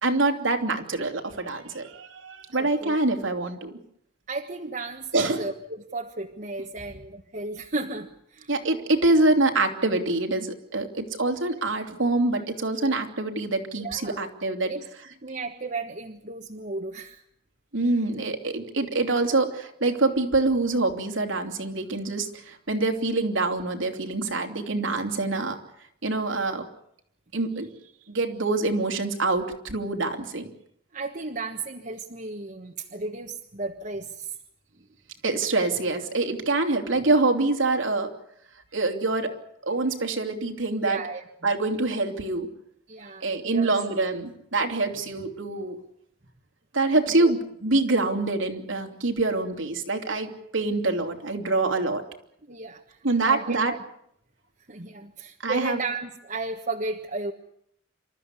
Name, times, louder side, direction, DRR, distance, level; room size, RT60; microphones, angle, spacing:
voice 1, 0.0-3.7 5.1-5.5 8.5-14.7 17.7-25.6 26.0-26.7 27.3-27.7 28.1-30.5 35.2-38.1 38.7-39.3 39.6-41.0 41.4-42.5 43.2-45.8 46.7-52.0 53.0-53.7 55.4-55.8, right 2 dB, 90° right, 5 dB, 3.1 m, -25 dB
voice 2, 2.5-3.0 4.3-8.5 13.7-14.2 14.6-14.8 15.2-17.2 30.9-34.3 40.8-41.2 42.9-43.7 47.1-47.3 52.5-53.0 53.2-53.8 54.7-57.3, right 3 dB, 40° right, 1 dB, 1.4 m, -34 dB
28.0 x 14.0 x 9.8 m, 0.73 s
head